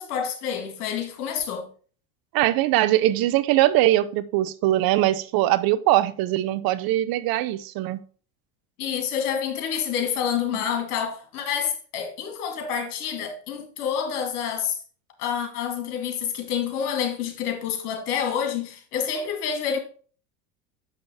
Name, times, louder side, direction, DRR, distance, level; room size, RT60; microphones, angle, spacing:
voice 1, 0.0-1.7 8.8-14.8 15.2-19.8, left 8 dB, 80° left, 2.0 m, -28 dB
voice 2, 2.3-8.0, right 15 dB, 55° right, 0.7 m, -21 dB
6.8 x 5.8 x 3.4 m
hypercardioid pair, 90°, 44 cm